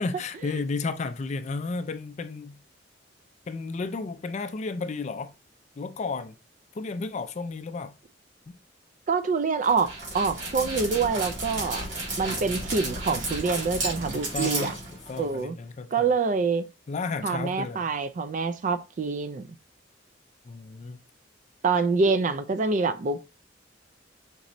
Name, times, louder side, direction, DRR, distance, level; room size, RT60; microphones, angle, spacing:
voice 1, 0.0-2.6 3.5-5.3 5.8-6.4 6.7-7.9 8.5-8.6 14.3-16.1 16.9-17.8 20.4-21.0, left 4 dB, 40° left, 0.4 m, -33 dB
voice 2, 9.1-11.9 12.2-14.7 15.2-15.6 15.9-16.7 17.2-19.5 21.6-23.2, right 4 dB, 45° right, 0.4 m, -26 dB
Dog, 9.6-15.4, right 2 dB, 75° right, 2.2 m, -33 dB
5.2 x 3.0 x 2.6 m
head